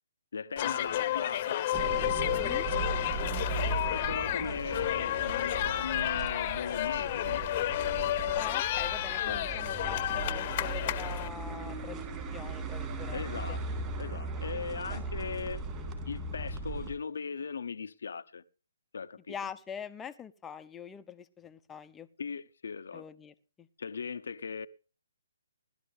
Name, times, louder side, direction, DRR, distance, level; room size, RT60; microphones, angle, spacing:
voice 1, 0.3-1.7 3.9-7.4 9.3-9.4 13.1-13.6 14.0-15.6 16.1-18.4 18.9-19.3 22.2-23.1 23.8-24.7, left 5 dB, 65° left, 0.9 m, -38 dB
sound 1, 0.6-11.3, left 13 dB, 35° left, 1.1 m, -31 dB
sound 2, 1.7-16.9, right 3 dB, 20° right, 3.9 m, -38 dB
voice 2, 2.3-2.7 8.3-12.1 12.3-13.2 13.5-13.6 14.9-15.1 19.3-22.1 22.9-23.7, left 7 dB, 10° left, 0.9 m, -44 dB
18.0 x 12.5 x 3.5 m
figure-of-eight pair, 140°, 0 cm